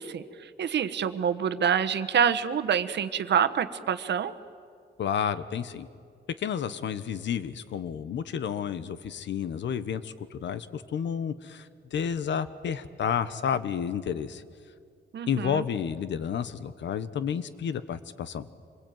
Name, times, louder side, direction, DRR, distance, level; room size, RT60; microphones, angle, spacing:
voice 1, 0.0-4.3 15.1-15.6, right 8 dB, 70° right, 10 dB, 1.2 m, -27 dB
voice 2, 5.0-5.9 6.4-14.4 15.3-18.5, left 8 dB, 80° left, 14 dB, 1.2 m, -31 dB
26.0 x 21.5 x 9.4 m, 2.2 s
wide cardioid pair, 125°, 18 cm